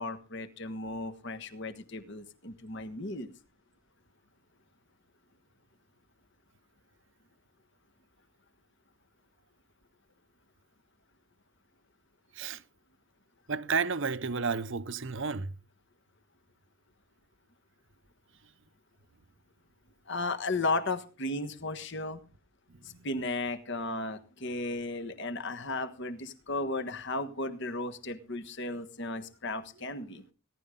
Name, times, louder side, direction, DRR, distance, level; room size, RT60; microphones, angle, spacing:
voice 1, 0.0-3.3 20.1-22.2 22.8-30.2, left 2 dB, 55° left, 1.4 m, -35 dB
voice 2, 13.5-15.5 22.7-23.1, right 5 dB, 55° right, 0.8 m, -32 dB
18.0 x 11.5 x 3.8 m
head